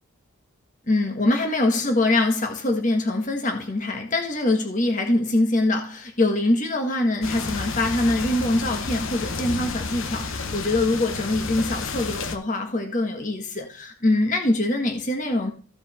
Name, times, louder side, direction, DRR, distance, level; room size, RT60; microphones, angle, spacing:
voice 1, 0.9-15.5, left 2 dB, 35° left, 1.6 m, -23 dB
sound 1, 7.2-12.4, left 4 dB, 70° left, 1.1 m, -31 dB
15.0 x 5.2 x 4.3 m
head